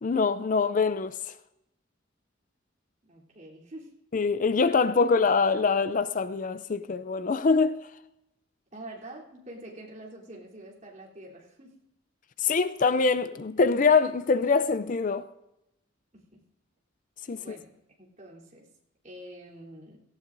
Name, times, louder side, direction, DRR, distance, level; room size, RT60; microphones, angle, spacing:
voice 1, 0.0-1.2 4.1-7.8 12.4-15.3 17.3-17.6, left 4 dB, 40° left, 0.4 m, -24 dB
voice 2, 3.0-3.9 8.7-11.8 16.1-16.4 17.3-17.7 18.0-18.7 19.0-20.0, right 1 dB, 40° right, 3.4 m, -46 dB
18.0 x 16.5 x 2.6 m
head